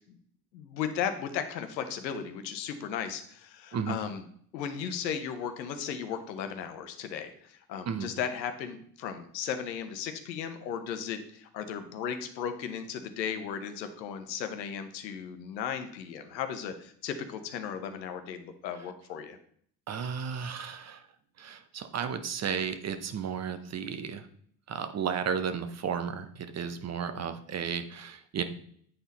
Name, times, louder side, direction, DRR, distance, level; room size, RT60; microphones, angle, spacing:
voice 1, 0.5-4.3 4.5-19.4, left 8 dB, 90° left, 8 dB, 0.9 m, -36 dB
voice 2, 19.9-21.0 21.4-24.3 24.7-28.4, right 7 dB, 30° right, 10 dB, 0.8 m, -33 dB
9.0 x 4.2 x 4.1 m, 0.62 s
hypercardioid pair, 75°, 50 cm